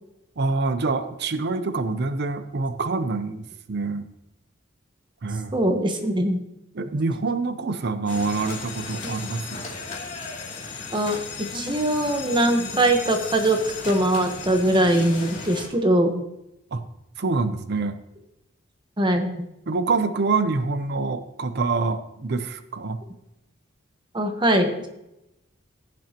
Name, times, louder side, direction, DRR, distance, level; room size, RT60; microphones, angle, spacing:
voice 1, 0.4-3.4 3.7-4.1 5.2-5.6 6.7-9.6 16.7-16.8 17.2-18.0 19.7-23.0, right 3 dB, 55° right, 10 dB, 0.6 m, -26 dB
voice 2, 5.5-6.4 10.9-13.6 13.8-16.2 19.0-19.5 24.1-24.9, right 1 dB, 25° right, 5 dB, 1.1 m, -22 dB
sound 1, 8.1-15.7, left 4 dB, 40° left, 2.7 m, -36 dB
16.5 x 7.4 x 2.9 m, 0.88 s
head